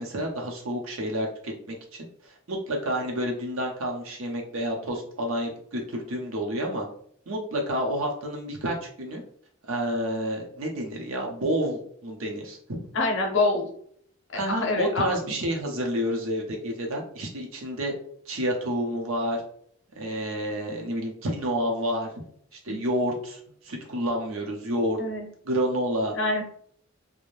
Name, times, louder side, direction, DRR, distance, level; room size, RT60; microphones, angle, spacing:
voice 1, 0.0-1.8 2.2-6.9 7.3-9.2 9.7-12.8 14.3-17.9 18.3-19.4 20.0-22.1 22.6-23.4 23.6-25.0 25.4-26.2, equal, 75° right, 1 dB, 0.6 m, -29 dB
voice 2, 12.9-13.7 14.3-15.2 22.7-22.8 25.0-25.3 26.1-26.5, left 2 dB, 60° left, 1 dB, 0.7 m, -26 dB
2.5 x 2.1 x 3.1 m, 0.63 s
head